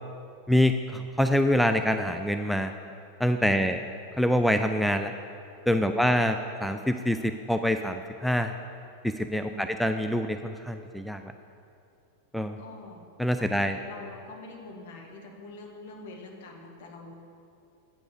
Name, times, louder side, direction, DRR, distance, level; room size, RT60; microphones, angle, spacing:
voice 1, 0.5-2.7 3.2-3.8 4.2-5.1 5.7-6.4 6.6-8.5 9.0-9.4 9.8-11.2 12.3-12.6 13.2-13.8, equal, ahead, 7 dB, 0.3 m, -25 dB
voice 2, 3.4-3.8 5.6-6.1 9.4-9.7 12.6-13.0 13.4-17.1, left 2 dB, 55° left, 1 dB, 1.3 m, -44 dB
8.8 x 8.3 x 4.9 m, 2.6 s
figure-of-eight pair, 90°, 0 cm